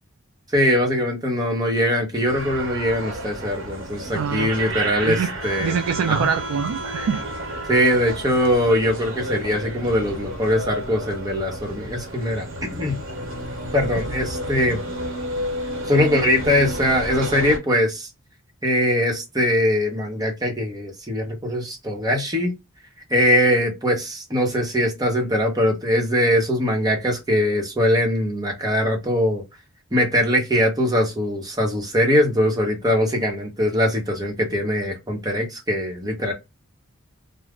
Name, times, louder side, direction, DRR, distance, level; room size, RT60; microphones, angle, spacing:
voice 1, 0.5-5.8 6.1-6.3 7.7-12.4 12.7-13.0 13.7-14.8 15.9-18.1 18.6-22.5 23.1-29.4 29.9-36.3, equal, 20° right, 0.8 m, -21 dB
sound 1, 2.2-17.6, right 1 dB, 70° right, 1.0 m, -31 dB
voice 2, 4.1-4.5 5.0-5.3 5.6-7.7, right 7 dB, 90° right, 0.3 m, -25 dB
2.4 x 2.0 x 3.4 m
head